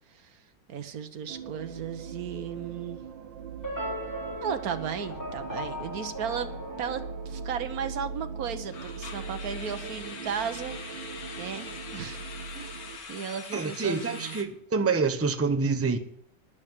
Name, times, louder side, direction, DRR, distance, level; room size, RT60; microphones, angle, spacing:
voice 1, 0.1-0.4 0.7-3.0 4.4-6.5 6.8-10.8 11.3-12.2 12.5-14.4, right 7 dB, 55° right, 1.5 m, -35 dB
sound 1, 1.3-13.0, right 5 dB, 75° right, 1.7 m, -40 dB
sound 2, 2.6-2.8 3.1-3.3 3.8-3.9 8.7-14.4, left 5 dB, 55° left, 1.8 m, -43 dB
sound 3, 3.6-8.0, equal, 10° left, 3.8 m, -38 dB
voice 2, 13.5-16.0, right 4 dB, 15° right, 0.5 m, -27 dB
11.5 x 10.0 x 9.1 m
omnidirectional pair, 2.0 m